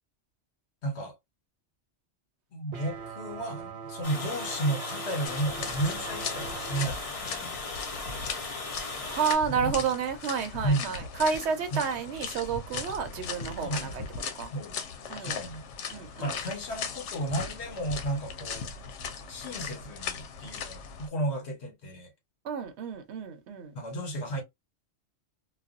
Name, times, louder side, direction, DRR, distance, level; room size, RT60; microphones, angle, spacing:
voice 1, 0.8-1.2 2.5-7.6 9.5-9.9 10.6-10.9 11.7-11.8 13.6-13.9 14.5-14.7 15.2-15.6 16.2-18.7 19.3-22.1 23.7-24.4, right 1 dB, 70° left, 1.2 m, -33 dB
sound 1, 2.7-6.9, right 6 dB, 45° right, 0.5 m, -41 dB
Water, 4.0-9.3, left 3 dB, 35° left, 0.8 m, -37 dB
sound 2, 5.3-21.1, left 6 dB, 90° left, 0.9 m, -38 dB
voice 2, 9.0-14.5 15.1-15.4 15.9-16.3 22.4-23.7, right 6 dB, 75° right, 0.9 m, -31 dB
2.4 x 2.2 x 2.4 m
omnidirectional pair, 1.2 m